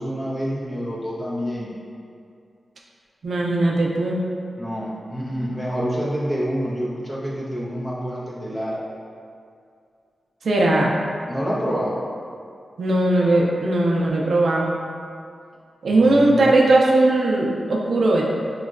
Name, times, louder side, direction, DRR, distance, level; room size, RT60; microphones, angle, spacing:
voice 1, 0.0-1.7 4.6-8.8 11.3-12.0 15.9-16.5, equal, 20° left, -6 dB, 0.5 m, -27 dB
voice 2, 3.2-4.2 10.4-10.9 12.8-14.7 15.8-18.2, right 2 dB, 70° right, -2 dB, 0.3 m, -18 dB
3.7 x 2.1 x 2.3 m, 2.3 s
wide cardioid pair, 140°, 0 cm